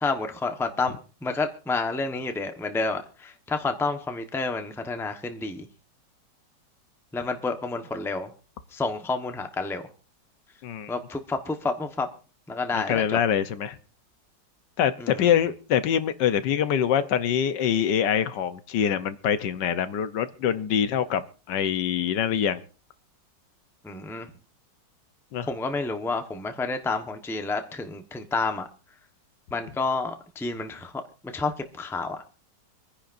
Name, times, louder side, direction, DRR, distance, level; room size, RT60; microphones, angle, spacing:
voice 1, 0.0-5.7 7.1-8.3 8.7-9.8 10.9-12.1 12.5-13.2 15.0-15.3 23.8-24.3 25.5-28.7 29.5-30.9 31.3-32.2, left 3 dB, ahead, 7 dB, 0.8 m, -29 dB
voice 2, 10.6-10.9 12.7-13.8 14.8-22.6 25.3-25.5, left 9 dB, 75° left, 12 dB, 1.5 m, -25 dB
26.0 x 10.0 x 2.6 m, 0.37 s
omnidirectional pair, 1.9 m